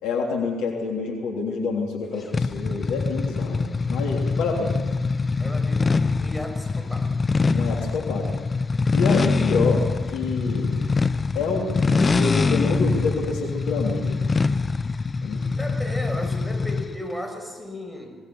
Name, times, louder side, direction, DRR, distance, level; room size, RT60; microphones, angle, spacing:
voice 1, 0.0-4.7 7.5-8.3 8.9-9.8 10.1-10.8 11.3-14.3 15.2-15.4, left 4 dB, 70° left, 0 dB, 3.2 m, -27 dB
sound 1, 2.3-17.0, left 4 dB, 35° left, 0.7 m, -24 dB
voice 2, 5.4-7.2 15.5-18.2, equal, ahead, 4 dB, 6.3 m, -35 dB
26.5 x 19.0 x 7.1 m, 1.4 s
hypercardioid pair, 45°, 0 cm